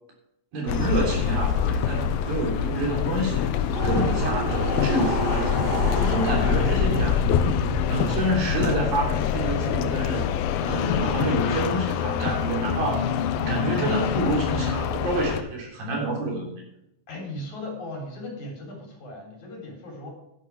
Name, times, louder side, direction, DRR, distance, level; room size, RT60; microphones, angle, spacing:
voice 1, 0.5-3.4 3.8-7.2 7.9-10.2 10.6-13.1 13.5-16.5, right 1 dB, 70° right, -1 dB, 5.2 m, -28 dB
sound 1, 0.7-15.4, left 8 dB, 80° left, 2.6 m, -25 dB
voice 2, 1.9-2.3 9.6-10.0 13.4-14.0 17.1-20.1, left 1 dB, 50° left, -1 dB, 4.9 m, -37 dB
sound 2, 3.2-10.0, right 2 dB, 50° right, 5.0 m, -31 dB
12.0 x 11.0 x 4.7 m, 0.83 s
omnidirectional pair, 4.3 m